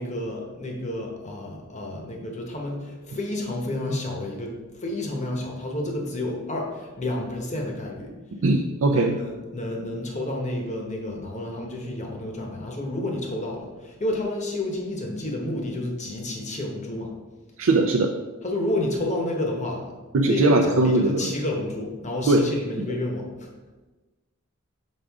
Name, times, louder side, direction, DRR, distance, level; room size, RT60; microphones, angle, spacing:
voice 1, 0.0-8.1 8.9-17.1 18.4-23.5, left 1 dB, 35° left, 0 dB, 1.0 m, -30 dB
voice 2, 8.4-9.2 17.6-18.1 20.1-21.3 22.3-22.5, right 2 dB, 70° right, 3 dB, 0.4 m, -20 dB
6.4 x 4.8 x 3.6 m, 1.2 s
head